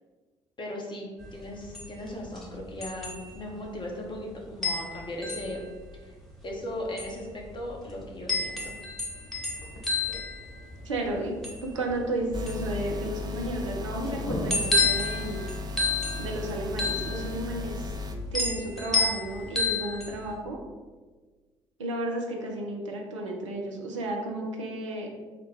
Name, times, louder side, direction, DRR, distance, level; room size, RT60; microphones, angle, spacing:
voice 1, 0.6-1.1 1.3-5.6 6.0-6.1 6.4-8.7, left 1 dB, 30° left, -1 dB, 1.0 m, -37 dB
sound 1, 1.2-20.3, left 3 dB, ahead, 1.0 m, -32 dB
sound 2, 9.0-19.4, left 1 dB, 80° left, 0.7 m, -43 dB
voice 2, 10.8-15.5 16.2-17.9 18.3-20.6 21.8-25.1, right 1 dB, 80° right, 0 dB, 0.5 m, -33 dB
sound 3, 12.3-18.2, left 3 dB, 25° right, 0.5 m, -36 dB
3.8 x 2.2 x 4.4 m, 1.4 s
figure-of-eight pair, 45°, 16 cm